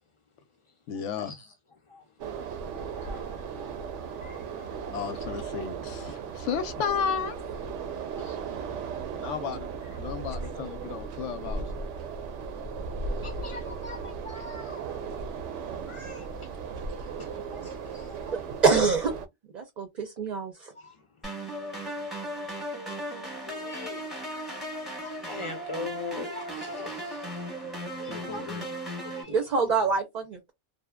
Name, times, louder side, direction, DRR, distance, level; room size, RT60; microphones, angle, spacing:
voice 1, 0.9-1.4 4.9-7.4 9.2-11.6 28.1-28.7, left 7 dB, 85° left, 0.9 m, -33 dB
sound 1, 2.2-19.3, right 5 dB, 90° right, 0.9 m, -36 dB
voice 2, 3.0-3.4 4.2-4.8 8.2-8.4 10.4-10.5 13.2-14.8 15.9-16.5 17.0-18.3 20.8-21.0 21.7-21.8 23.5-24.1 24.9-27.4 27.9-28.8 29.0-29.4, left 3 dB, 50° left, 0.4 m, -42 dB
voice 3, 18.6-19.1 19.5-20.7 29.3-30.5, right 4 dB, 50° right, 0.5 m, -25 dB
sound 2, 21.2-29.2, right 1 dB, ahead, 0.7 m, -36 dB
2.8 x 2.0 x 2.2 m
omnidirectional pair, 1.2 m